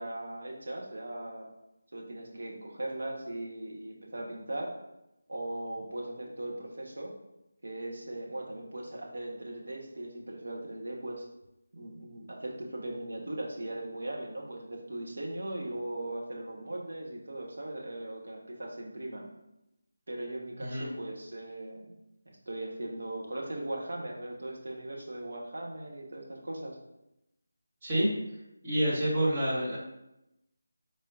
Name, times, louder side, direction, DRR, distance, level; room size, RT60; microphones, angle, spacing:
voice 1, 0.0-1.5 1.9-4.7 5.3-7.1 7.6-11.2 11.7-19.3 20.1-21.9 22.2-26.8, right 1 dB, 65° right, -1 dB, 1.5 m, -39 dB
voice 2, 28.6-29.8, right 1 dB, 30° right, -6 dB, 2.0 m, -28 dB
8.4 x 4.2 x 2.7 m, 0.89 s
figure-of-eight pair, 160°, 0 cm